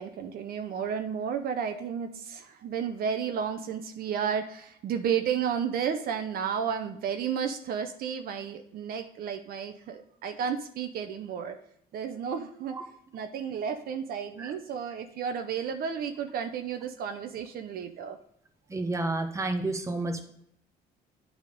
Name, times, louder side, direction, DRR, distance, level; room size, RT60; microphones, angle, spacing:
voice 1, 0.0-11.6 11.9-12.8 13.1-18.2, right 7 dB, 65° right, 7 dB, 0.7 m, -32 dB
voice 2, 18.7-20.3, right 2 dB, 15° right, 5 dB, 1.0 m, -30 dB
8.8 x 3.5 x 5.2 m, 0.73 s
cardioid pair, 110°, 17 cm